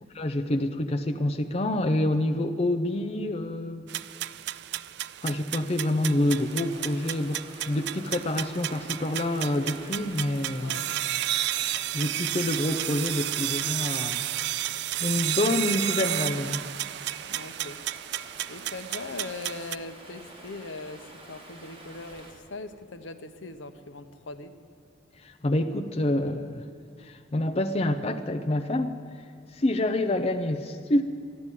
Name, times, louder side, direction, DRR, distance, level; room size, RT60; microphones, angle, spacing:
voice 1, 0.1-4.0 5.2-10.8 11.9-14.2 15.0-16.6 25.2-26.6 27.0-29.0 29.5-31.0, left 1 dB, 35° left, 7 dB, 0.6 m, -27 dB
sound 1, 3.9-19.8, right 13 dB, 60° right, 0.3 m, -32 dB
Stream, 6.3-22.3, right 2 dB, 30° right, 2.3 m, -48 dB
voice 2, 10.6-11.0 17.3-17.8 18.2-24.6, left 3 dB, 80° left, 9 dB, 0.9 m, -40 dB
13.5 x 10.5 x 9.8 m, 2.3 s
head